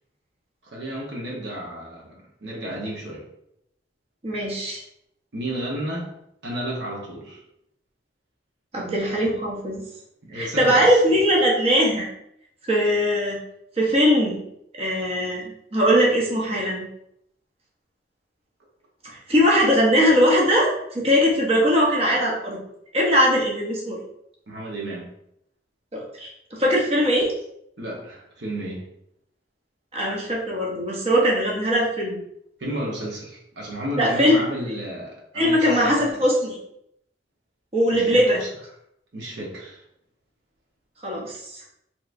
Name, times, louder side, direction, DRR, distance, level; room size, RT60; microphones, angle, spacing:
voice 1, 0.6-3.3 5.3-6.1 6.4-7.4 10.2-11.0 24.5-25.1 27.8-28.8 32.6-36.2 37.9-38.5 39.1-39.8, right 1 dB, 75° right, -3 dB, 0.9 m, -32 dB
voice 2, 4.2-4.8 8.7-9.8 10.3-12.1 12.7-13.4 13.8-14.4 14.7-16.9 19.0-22.6 22.9-24.0 25.9-27.3 29.9-32.2 34.0-34.4 35.3-36.6 37.7-38.4 41.0-41.6, equal, 35° right, -3 dB, 0.8 m, -20 dB
3.4 x 2.9 x 2.5 m, 0.77 s
head